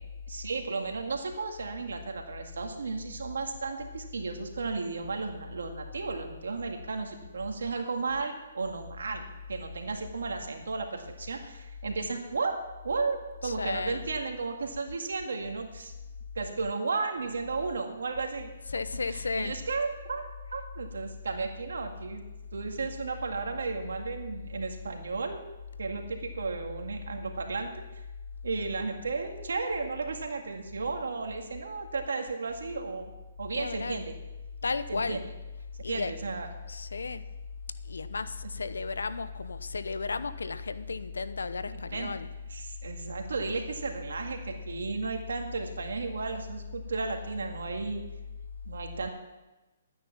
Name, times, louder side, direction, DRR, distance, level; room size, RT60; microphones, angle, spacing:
voice 1, 0.3-12.6 12.8-15.9 16.4-18.5 18.9-22.2 22.5-25.4 25.8-27.8 28.4-33.1 33.4-34.1 34.9-35.2 35.9-36.5 41.7-42.1 42.5-48.0 48.7-49.1, right 4 dB, 80° right, 4 dB, 2.0 m, -34 dB
voice 2, 13.4-14.1 18.7-19.6 33.5-34.1 34.6-35.3 35.8-36.1 36.6-37.2 37.8-42.3, left 4 dB, 90° left, 13 dB, 0.8 m, -34 dB
12.0 x 9.4 x 6.0 m, 1.1 s
hypercardioid pair, 145°, 0 cm